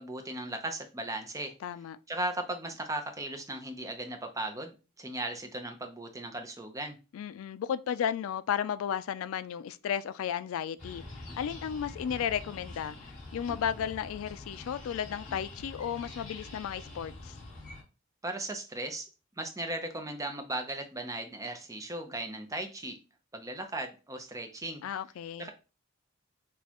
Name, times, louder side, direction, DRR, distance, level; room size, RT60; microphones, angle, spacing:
voice 1, 0.0-1.5 2.1-7.0 18.2-19.1 19.4-23.0 23.3-24.8 25.4-25.5, right 1 dB, 15° right, 0.6 m, -37 dB
voice 2, 1.6-2.0 7.1-11.0 11.4-13.0 13.3-17.4 24.8-25.5, left 8 dB, 80° left, 0.3 m, -34 dB
sound 1, 10.8-17.8, left 2 dB, 35° left, 2.2 m, -45 dB
6.1 x 2.3 x 2.9 m
head